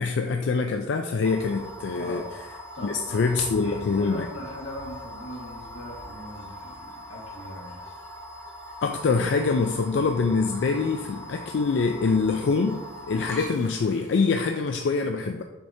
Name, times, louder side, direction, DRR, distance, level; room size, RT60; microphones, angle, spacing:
voice 1, 0.0-2.2 2.8-4.3 8.8-12.8 13.1-15.4, left 4 dB, 65° left, 4 dB, 0.4 m, -24 dB
sound 1, 1.2-14.6, left 1 dB, 15° left, 1.1 m, -41 dB
voice 2, 1.9-2.4 2.7-3.3 3.6-7.8, equal, 90° left, -2 dB, 1.7 m, -40 dB
7.2 x 4.9 x 2.7 m, 1.1 s
head